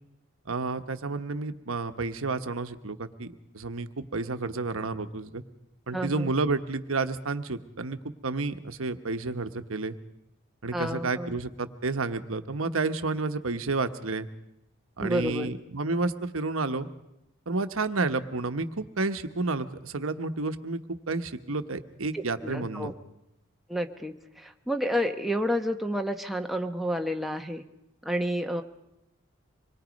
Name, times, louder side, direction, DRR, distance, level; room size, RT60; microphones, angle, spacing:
voice 1, 0.5-5.4 5.9-9.9 10.6-14.3 15.0-16.9 17.5-22.9, right 3 dB, 80° right, 9 dB, 1.1 m, -31 dB
voice 2, 5.9-6.3 10.7-11.3 15.0-15.5 22.1-22.9 23.7-27.6 28.0-28.6, equal, ahead, 4 dB, 1.0 m, -30 dB
25.5 x 21.5 x 5.2 m, 0.87 s
head